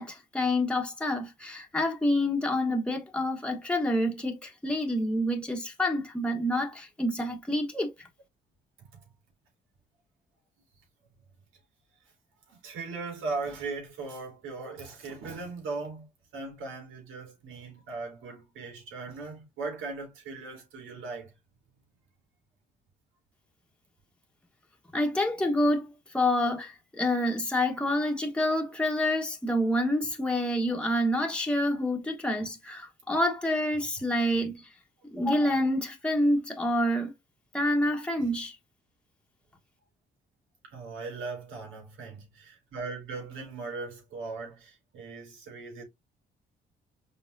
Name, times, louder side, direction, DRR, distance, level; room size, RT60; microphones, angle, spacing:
voice 1, 0.0-7.9 24.9-34.6 35.1-37.1 37.5-38.5, left 1 dB, 5° left, 1.2 m, -27 dB
voice 2, 12.5-16.1 16.3-21.3 38.2-38.3 40.6-45.8, right 3 dB, 85° right, 2.7 m, -38 dB
5.5 x 3.5 x 2.6 m
cardioid pair, 90°, 20 cm